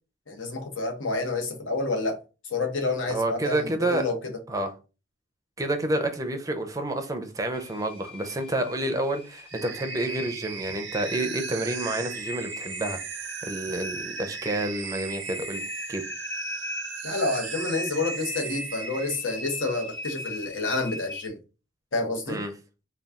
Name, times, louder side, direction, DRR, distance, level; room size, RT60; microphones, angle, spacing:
voice 1, 0.3-4.2 17.0-21.4 21.9-22.4, left 3 dB, 80° left, 1.0 m, -29 dB
voice 2, 3.1-4.1 4.5-4.7 5.6-13.0 13.4-16.1 22.3-22.5, right 1 dB, 20° right, 0.5 m, -29 dB
sound 1, 7.5-21.3, left 1 dB, 25° left, 1.2 m, -39 dB
sound 2, 9.5-19.2, right 9 dB, 70° right, 0.5 m, -38 dB
4.0 x 2.3 x 3.5 m
head